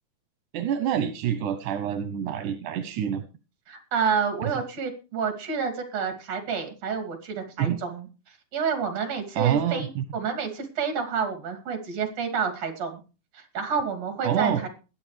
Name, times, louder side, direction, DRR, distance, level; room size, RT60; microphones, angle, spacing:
voice 1, 0.5-3.2 7.6-7.8 9.4-10.0 14.2-14.6, right 9 dB, 85° right, 9 dB, 2.4 m, -26 dB
voice 2, 3.7-8.1 8.5-13.0 13.3-14.7, right 6 dB, 60° right, 5 dB, 3.6 m, -29 dB
21.5 x 8.9 x 3.3 m, 0.33 s
omnidirectional pair, 3.5 m